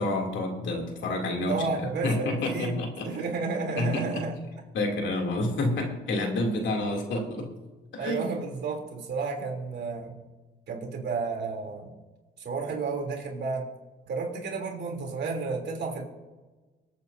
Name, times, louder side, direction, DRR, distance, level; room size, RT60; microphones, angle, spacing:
voice 1, 0.0-3.1 3.8-4.2 4.7-7.5 7.9-8.3, left 2 dB, 70° left, 1 dB, 2.9 m, -29 dB
voice 2, 1.5-2.7 3.0-4.4 8.0-10.1 10.7-11.9 12.4-13.7 14.1-16.0, right 4 dB, 60° right, 0 dB, 3.2 m, -31 dB
25.0 x 8.7 x 2.7 m, 1.2 s
cardioid pair, 90°, 20 cm